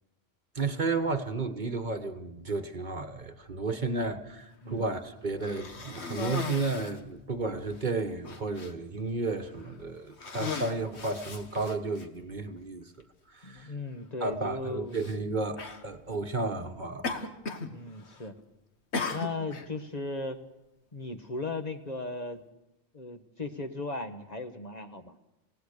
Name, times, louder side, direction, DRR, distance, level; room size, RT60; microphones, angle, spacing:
voice 1, 0.5-12.8 13.3-13.7 14.2-17.3, right 3 dB, 45° right, 1.4 m, -32 dB
Cough, 5.4-7.0 7.8-7.9 8.2-8.7 9.5-9.7 10.1-12.1 13.0-13.1 14.9-15.2 15.6-15.8 17.0-17.7 18.0-18.4 18.9-19.7, left 4 dB, 85° left, 1.8 m, -36 dB
voice 2, 13.4-15.0 17.5-18.4 19.1-20.4 20.9-22.4 22.9-25.2, left 2 dB, 40° left, 1.4 m, -37 dB
28.0 x 17.5 x 6.7 m
omnidirectional pair, 1.1 m